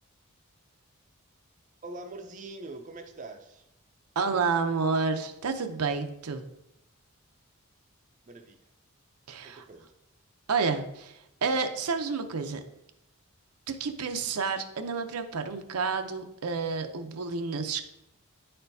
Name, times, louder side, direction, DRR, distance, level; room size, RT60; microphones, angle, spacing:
voice 1, 1.8-3.7 8.3-8.6 9.4-9.9, right 2 dB, 35° right, 5 dB, 0.4 m, -43 dB
voice 2, 4.2-6.4 9.3-9.6 10.5-12.6 13.7-17.8, right 4 dB, 90° right, 6 dB, 0.6 m, -30 dB
9.4 x 4.4 x 2.7 m, 0.83 s
head